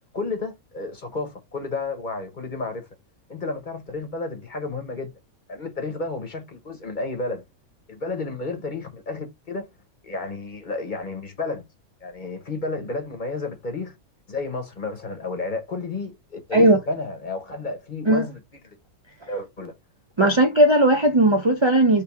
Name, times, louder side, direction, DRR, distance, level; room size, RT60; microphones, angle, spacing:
voice 1, 0.1-2.8 3.3-5.1 5.5-7.4 7.9-9.7 10.0-11.6 12.0-14.0 14.3-18.4 18.6-18.8 19.3-19.7 20.2-20.3, left 3 dB, 35° left, 0.9 m, -31 dB
voice 2, 20.2-22.0, right 1 dB, 45° right, 0.3 m, -17 dB
3.3 x 3.2 x 4.6 m
omnidirectional pair, 1.5 m